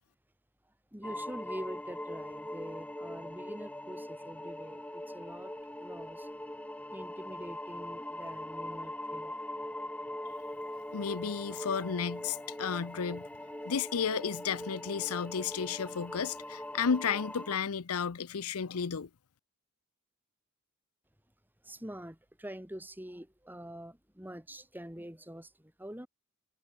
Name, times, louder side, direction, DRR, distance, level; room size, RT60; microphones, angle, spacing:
voice 1, 0.9-6.3 6.9-9.3 21.6-26.1, equal, 10° right, 3.8 m, -45 dB
sound 1, 1.0-17.6, left 1 dB, 5° left, 2.5 m, -41 dB
voice 2, 10.9-13.3 13.7-19.1, left 6 dB, 85° left, 0.7 m, -33 dB
head